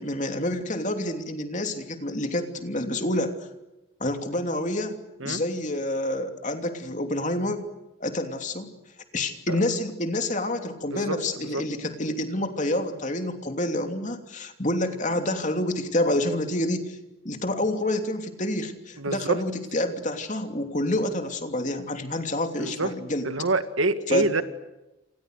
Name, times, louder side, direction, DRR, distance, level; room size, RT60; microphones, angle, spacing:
voice 1, 0.0-3.4 4.0-7.6 8.0-8.7 9.1-17.0 17.2-23.3 24.1-24.3, left 1 dB, 35° left, 6 dB, 3.0 m, -28 dB
voice 2, 19.0-19.4 22.6-22.9 23.2-24.4, right 2 dB, 70° right, 10 dB, 2.0 m, -26 dB
28.5 x 28.5 x 6.7 m, 0.99 s
head